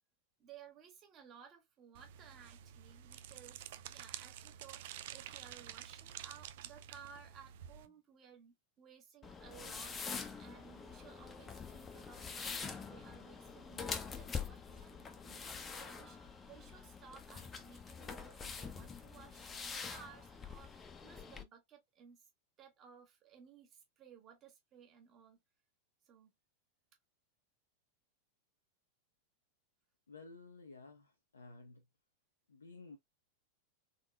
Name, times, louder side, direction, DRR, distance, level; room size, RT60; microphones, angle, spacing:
voice 1, 0.4-22.3 22.6-25.4 26.1-26.3, right 7 dB, 30° right, 1.8 m, -58 dB
sound 1, 2.0-7.9, right 11 dB, 50° right, 0.5 m, -50 dB
sound 2, 9.2-21.4, left 5 dB, 20° left, 0.8 m, -45 dB
voice 2, 30.1-31.8 32.5-33.0, left 3 dB, 70° left, 0.6 m, -54 dB
4.1 x 3.8 x 2.4 m
figure-of-eight pair, 90°, 0 cm